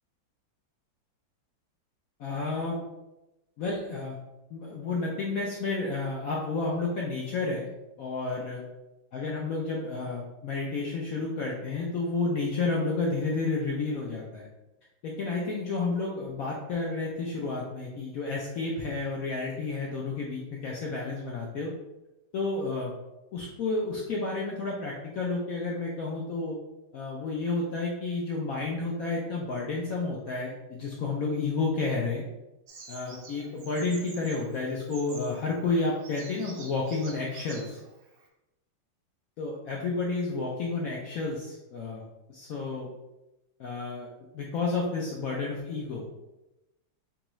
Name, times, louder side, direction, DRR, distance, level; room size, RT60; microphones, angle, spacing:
voice 1, 2.2-2.8 3.6-4.2 4.5-7.7 8.0-8.6 9.1-14.5 15.0-21.7 22.3-22.9 23.3-26.6 26.9-32.2 32.9-37.8 39.4-42.9 43.6-46.1, left 3 dB, 75° left, -3 dB, 0.8 m, -31 dB
Bird vocalization bird call bird song, 32.7-38.3, right 4 dB, 65° right, 0.9 m, -48 dB
3.5 x 3.0 x 3.0 m, 0.97 s
omnidirectional pair, 2.1 m